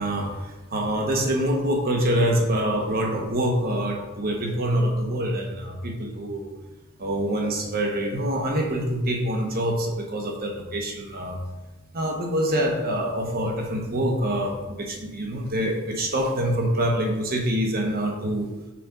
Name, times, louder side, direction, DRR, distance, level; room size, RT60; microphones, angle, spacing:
voice 1, 0.0-6.5 7.0-11.4 11.9-18.5, right 1 dB, 45° right, 1 dB, 1.1 m, -25 dB
6.1 x 4.3 x 5.0 m, 1.1 s
head